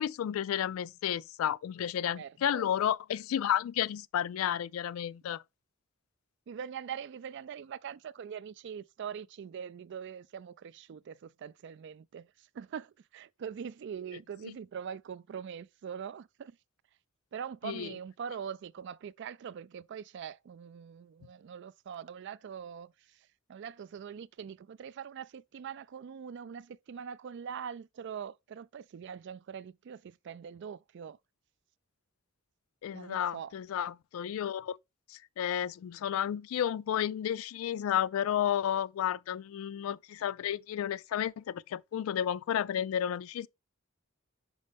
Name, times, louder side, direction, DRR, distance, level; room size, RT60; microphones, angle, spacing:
voice 1, 0.0-5.4 17.6-17.9 32.8-34.8 35.1-43.5, left 10 dB, 80° left, 0.3 m, -32 dB
voice 2, 2.2-2.6 6.5-16.6 17.3-23.2 23.5-31.2 32.9-33.5, right 7 dB, 60° right, 0.3 m, -43 dB
5.4 x 5.1 x 3.4 m
head